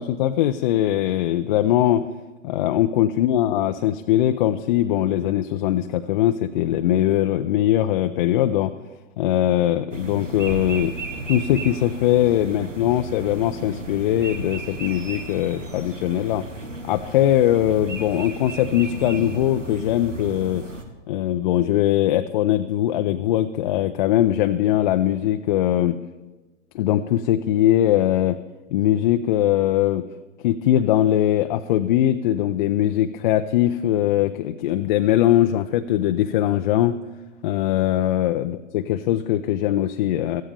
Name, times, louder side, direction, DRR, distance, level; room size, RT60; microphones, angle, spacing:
voice 1, 0.0-2.1 2.4-8.7 9.2-10.9 11.3-16.4 16.8-20.6 21.1-26.0 26.7-28.4 28.7-30.1 30.4-37.0 37.4-40.4, left 12 dB, 40° left, 7 dB, 0.6 m, -21 dB
sound 1, 9.9-20.8, right 2 dB, 85° right, 1.7 m, -34 dB
17.0 x 13.5 x 3.4 m, 1.2 s
figure-of-eight pair, 105°, 37 cm